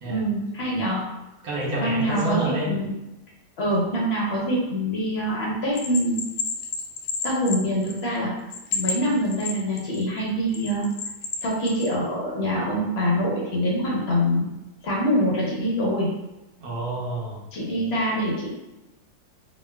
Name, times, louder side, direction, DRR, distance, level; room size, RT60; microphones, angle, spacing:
voice 1, 0.0-1.0 1.8-2.9 3.6-6.2 7.2-8.3 8.7-10.9 11.4-14.5 14.8-16.1 17.5-18.5, equal, 55° left, -4 dB, 0.7 m, -24 dB
voice 2, 1.4-2.7 16.6-17.4, right 2 dB, 65° right, -5 dB, 1.3 m, -28 dB
Bell, 5.8-8.2 8.5-10.0 10.5-11.9, left 4 dB, 85° left, 1.2 m, -30 dB
4.0 x 2.3 x 2.2 m, 0.98 s
omnidirectional pair, 1.8 m